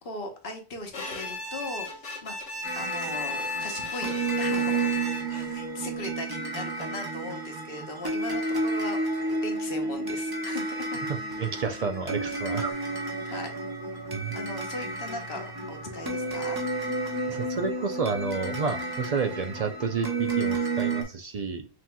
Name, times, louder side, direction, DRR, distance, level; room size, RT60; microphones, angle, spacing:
voice 1, 0.0-2.4 2.7-4.9 5.3-11.0 13.2-13.5 14.3-16.6, left 2 dB, 55° left, 1.1 m, -39 dB
Bowed string instrument, 0.9-5.5, left 3 dB, 85° left, 1.4 m, -35 dB
sound 1, 2.6-21.0, right 3 dB, 20° right, 0.8 m, -31 dB
voice 2, 11.1-12.7 13.2-13.3 14.1-14.4 17.2-21.7, right 5 dB, 50° right, 0.4 m, -30 dB
sound 2, 12.7-17.7, left 2 dB, 15° left, 1.0 m, -49 dB
6.0 x 2.9 x 2.2 m
omnidirectional pair, 1.2 m